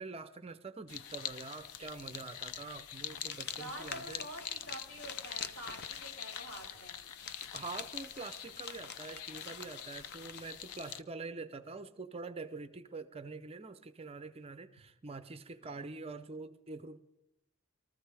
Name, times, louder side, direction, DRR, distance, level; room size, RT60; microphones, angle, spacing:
voice 1, 0.0-4.2 7.5-17.0, right 3 dB, 25° right, 0.5 m, -45 dB
sound 1, 0.9-11.0, left 9 dB, 85° left, 0.6 m, -45 dB
sound 2, 3.0-10.5, left 6 dB, 50° left, 0.7 m, -48 dB
voice 2, 3.5-7.0 15.6-15.8, equal, 70° left, 6.3 m, -47 dB
23.0 x 14.0 x 3.4 m
head